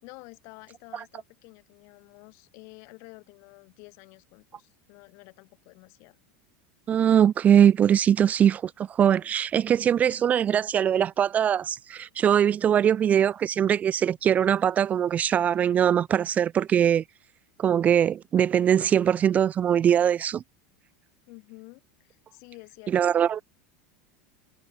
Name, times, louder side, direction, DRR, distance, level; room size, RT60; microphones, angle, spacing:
voice 1, 0.0-6.2 9.1-9.3 21.3-23.1, left 30 dB, 55° left, 4.3 m, -50 dB
voice 2, 6.9-17.0 17.6-20.4 22.9-23.4, right 9 dB, 25° right, 0.5 m, -22 dB
supercardioid pair, 140°, 6 cm